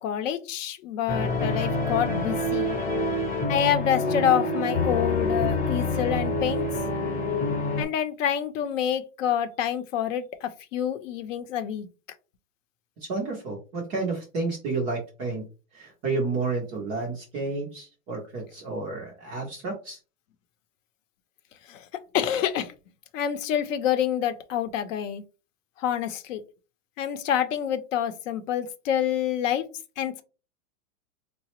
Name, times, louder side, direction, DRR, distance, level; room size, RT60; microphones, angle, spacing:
voice 1, 0.0-2.8 3.5-6.7 7.8-11.9 21.7-21.9 22.1-22.7 23.1-25.2 25.8-26.4 27.0-29.7 30.0-30.2, left 9 dB, 65° left, 10 dB, 0.7 m, -27 dB
sound 1, 1.1-7.8, left 2 dB, 20° left, 0.8 m, -26 dB
voice 2, 13.1-15.5 15.7-20.0, right 3 dB, 15° right, -1 dB, 0.3 m, -31 dB
4.0 x 2.0 x 2.9 m, 0.33 s
supercardioid pair, 140°, 42 cm